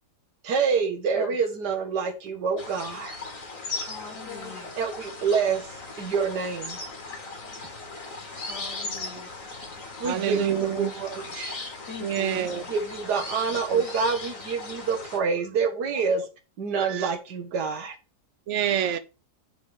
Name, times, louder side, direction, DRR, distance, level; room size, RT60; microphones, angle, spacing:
voice 1, 0.4-3.2 4.8-5.6 6.0-6.8 10.0-11.6 12.7-16.2 16.6-17.9, right 5 dB, 90° right, 1.8 m, -27 dB
sound 1, 2.6-15.2, left 3 dB, 55° left, 2.2 m, -38 dB
voice 2, 3.8-4.7 8.4-9.3 11.9-12.7, left 3 dB, 85° left, 2.8 m, -40 dB
voice 3, 10.0-10.9 12.0-12.7 13.7-13.8 15.9-16.0 16.9-17.1 18.5-19.0, right 9 dB, 55° right, 1.0 m, -27 dB
10.0 x 3.4 x 5.2 m
omnidirectional pair, 1.7 m